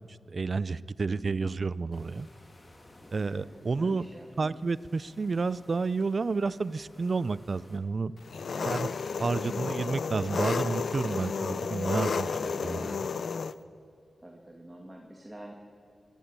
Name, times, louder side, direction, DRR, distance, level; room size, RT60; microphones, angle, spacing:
voice 1, 0.1-2.3 3.1-4.1 4.4-8.1 8.7-8.9 9.2-12.4 12.6-12.8, right 4 dB, 50° right, 18 dB, 0.5 m, -30 dB
voice 2, 1.1-1.6 3.3-3.5 3.7-4.6 8.5-9.0 12.4-13.0 14.2-15.5, right 1 dB, 15° right, 0 dB, 2.4 m, -46 dB
sound 1, 1.9-7.8, left 1 dB, 30° left, 3.0 m, -57 dB
Engine, 8.3-13.5, left 5 dB, 75° left, 0.6 m, -32 dB
26.0 x 12.0 x 8.9 m, 2.4 s
wide cardioid pair, 110°, 0 cm